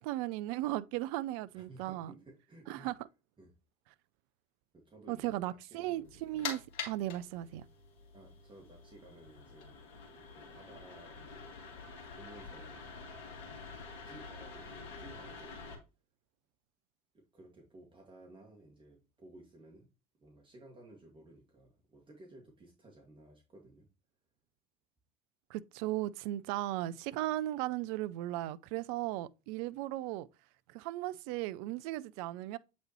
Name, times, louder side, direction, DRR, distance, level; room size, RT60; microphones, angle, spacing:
voice 1, 0.0-2.1 2.7-2.9 5.1-7.7 25.5-30.3 30.7-32.6, right 15 dB, 65° right, 0.4 m, -36 dB
voice 2, 1.5-2.9 3.4-3.5 4.9-6.5 8.1-9.8 10.4-11.5 12.1-12.9 13.5-13.8 14.0-15.8 17.1-19.9 20.2-23.9, right 2 dB, 25° right, 2.0 m, -56 dB
Extractor fan turn on, 6.0-15.7, left 5 dB, 65° left, 2.0 m, -46 dB
7.9 x 4.1 x 3.0 m
hypercardioid pair, 65°, 20 cm